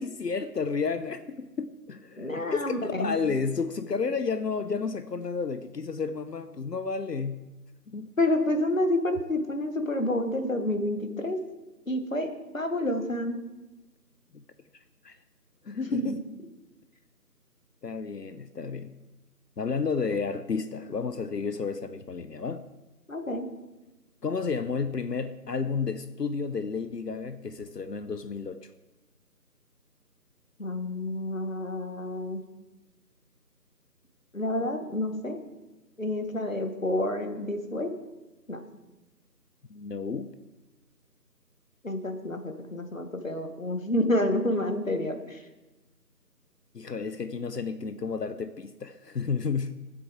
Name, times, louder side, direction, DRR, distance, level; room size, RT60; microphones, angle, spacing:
voice 1, 0.0-7.5 7.9-8.1 14.3-14.4 15.0-15.1 15.6-16.2 17.8-18.9 19.6-22.6 24.2-28.6 39.7-40.3 46.7-49.8, left 5 dB, 75° left, 11 dB, 0.8 m, -31 dB
voice 2, 2.2-3.2 8.2-11.4 11.9-13.4 15.9-16.1 23.1-23.5 30.6-32.4 34.3-35.4 36.0-37.9 38.5-38.6 41.8-45.4, left 1 dB, 50° left, 6 dB, 1.4 m, -29 dB
13.5 x 7.7 x 4.6 m, 1.1 s
figure-of-eight pair, 180°, 49 cm